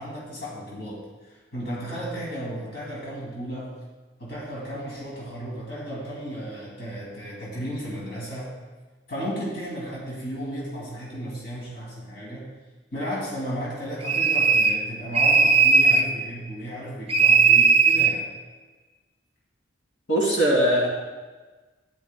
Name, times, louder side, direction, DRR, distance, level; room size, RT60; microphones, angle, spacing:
voice 1, 0.0-3.7 4.2-8.5 9.1-12.5 12.9-18.3, equal, 60° left, -5 dB, 2.6 m, -34 dB
sound 1, 14.0-14.8 15.1-16.1 17.1-18.2, right 5 dB, 30° right, 0.6 m, -18 dB
voice 2, 20.1-20.9, equal, 80° left, -4 dB, 2.7 m, -20 dB
12.5 x 10.5 x 2.2 m, 1.3 s
head